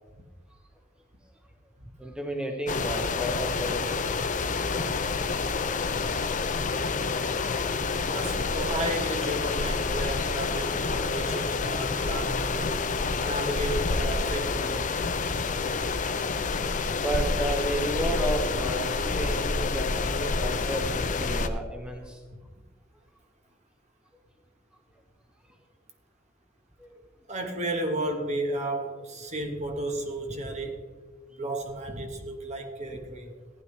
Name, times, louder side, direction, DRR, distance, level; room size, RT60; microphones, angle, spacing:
voice 1, 2.0-4.0 16.9-22.2 26.8-27.0, right 1 dB, 5° right, 0.9 m, -32 dB
sound 1, 2.7-21.5, left 4 dB, 40° left, 0.6 m, -28 dB
voice 2, 8.1-12.8 13.2-14.9 22.3-22.4 27.3-30.8 31.3-33.4, right 1 dB, 35° right, 1.3 m, -33 dB
15.0 x 10.0 x 3.2 m
head